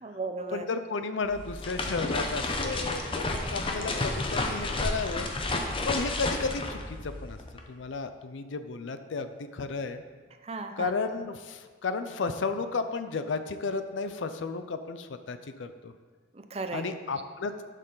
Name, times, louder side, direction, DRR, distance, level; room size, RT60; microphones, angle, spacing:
voice 1, 0.0-0.7 3.4-3.9 10.4-10.9 16.3-16.8, right 3 dB, 35° right, 7 dB, 0.6 m, -36 dB
voice 2, 0.5-5.3 5.9-7.4 7.7-10.0 10.8-15.9 16.7-17.7, left 4 dB, 85° left, 9 dB, 0.5 m, -33 dB
sound 1, 1.2-7.6, left 2 dB, 30° left, 0.7 m, -31 dB
11.0 x 6.5 x 3.9 m, 1.5 s
head